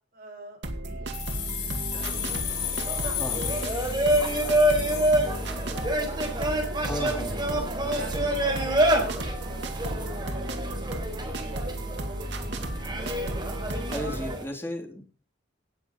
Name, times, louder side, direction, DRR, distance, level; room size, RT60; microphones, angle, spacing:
voice 1, 0.1-5.1 6.0-7.0 7.3-8.8 9.1-12.0 12.4-13.2, right 1 dB, 55° right, 1 dB, 5.4 m, -49 dB
sound 1, 0.6-14.4, right 1 dB, 75° right, 2.2 m, -34 dB
sound 2, 1.1-5.9, left 10 dB, 65° left, 5.8 m, -34 dB
sound 3, 1.9-14.4, right 1 dB, 25° right, 3.7 m, -28 dB
voice 2, 6.9-7.3 13.9-15.0, equal, 15° left, 2 dB, 3.0 m, -34 dB
17.5 x 7.0 x 5.8 m, 0.41 s
head